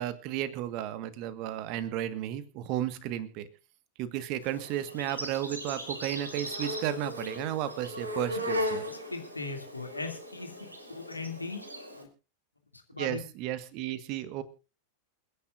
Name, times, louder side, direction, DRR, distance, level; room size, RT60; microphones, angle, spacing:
voice 1, 0.0-3.5 4.0-8.8 13.0-14.4, right 12 dB, 40° right, 12 dB, 1.6 m, -33 dB
Insect, 4.4-12.0, equal, 80° right, 4.9 m, -37 dB
voice 2, 8.9-11.6 12.0-12.1 12.7-13.2, left 3 dB, 85° left, 4 dB, 2.7 m, -39 dB
28.5 x 10.5 x 2.6 m, 0.32 s
figure-of-eight pair, 90°, 0 cm